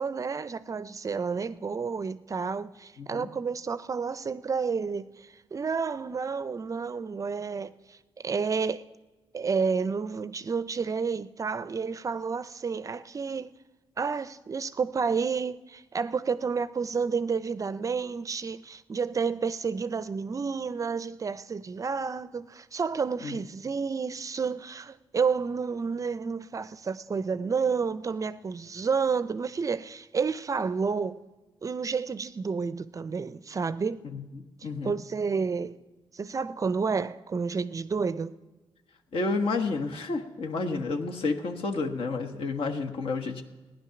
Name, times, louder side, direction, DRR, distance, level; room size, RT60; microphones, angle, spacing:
voice 1, 0.0-8.8 9.3-13.5 14.0-31.2 31.6-34.0 34.8-35.8 36.1-38.4, right 5 dB, 35° right, 0.4 m, -30 dB
voice 2, 3.0-3.3 23.2-23.4 34.1-34.9 39.1-43.4, left 3 dB, 65° left, 1.3 m, -30 dB
16.0 x 10.0 x 5.9 m
cardioid pair, 95°, 10 cm